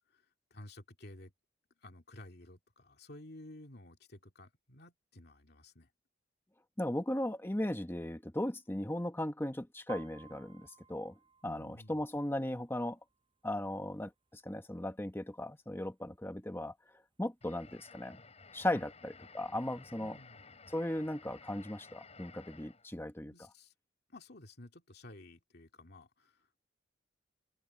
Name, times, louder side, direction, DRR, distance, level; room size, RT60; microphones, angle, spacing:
voice 1, 0.5-1.3 1.8-5.9 11.4-12.0 18.7-18.8 20.0-20.4 23.3-23.7 24.1-26.6, left 1 dB, 60° left, 2.4 m, -53 dB
voice 2, 6.8-11.1 11.4-13.0 13.4-16.7 17.2-18.2 18.5-20.1 20.7-23.3, left 1 dB, 15° left, 1.1 m, -37 dB
Piano, 9.9-13.5 13.9-14.3 14.6-15.3 15.9-16.0 16.2-17.2 17.6-17.7, right 5 dB, 30° right, 6.1 m, -56 dB
sound 1, 17.4-22.9, left 4 dB, 35° left, 5.9 m, -55 dB
head